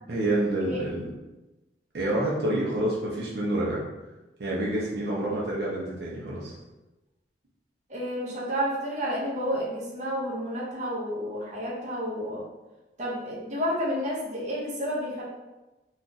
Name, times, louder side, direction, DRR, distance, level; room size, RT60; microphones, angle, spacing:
voice 1, 0.1-1.1 1.9-3.8 4.4-6.5, right 1 dB, 70° right, -5 dB, 0.7 m, -28 dB
voice 2, 7.9-12.4 13.0-15.2, equal, 40° right, -6 dB, 0.8 m, -30 dB
2.5 x 2.4 x 3.9 m, 1.1 s
head